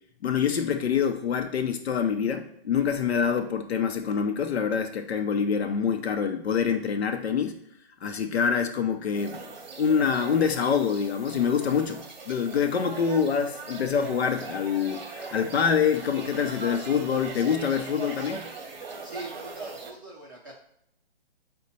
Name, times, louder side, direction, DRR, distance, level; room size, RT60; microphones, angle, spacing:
voice 1, 0.2-7.6 8.0-9.4 9.8-18.5, left 7 dB, 90° left, 6 dB, 0.6 m, -26 dB
sound 1, 9.1-19.9, right 4 dB, 45° right, 0.8 m, -40 dB
voice 2, 19.0-20.5, right 2 dB, 20° right, -5 dB, 0.4 m, -42 dB
5.0 x 2.2 x 4.1 m, 0.76 s
hypercardioid pair, 165°, 31 cm